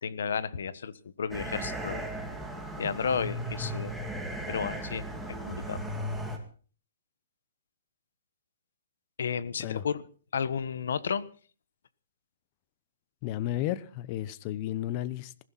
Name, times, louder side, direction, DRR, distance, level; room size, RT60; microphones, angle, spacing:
voice 1, 0.0-2.1 2.8-3.9 4.5-5.8 9.2-10.1 10.3-11.3, left 6 dB, 75° left, 1.3 m, -32 dB
sound 1, 1.3-6.4, right 1 dB, ahead, 2.4 m, -36 dB
voice 2, 13.2-15.4, left 13 dB, 30° left, 0.9 m, -33 dB
20.5 x 16.0 x 4.1 m
hypercardioid pair, 165°, 0 cm